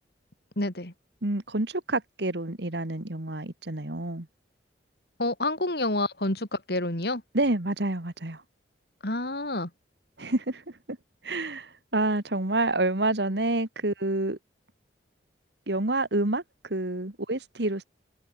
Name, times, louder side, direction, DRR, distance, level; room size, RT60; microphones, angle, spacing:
voice 1, 0.6-0.9 5.2-7.2 9.0-9.7, left 2 dB, 60° left, 4.3 m, -28 dB
voice 2, 1.2-4.3 7.3-8.4 10.2-10.6 10.9-11.0 11.2-14.4 15.7-17.9, right 2 dB, 65° right, 2.1 m, -28 dB
head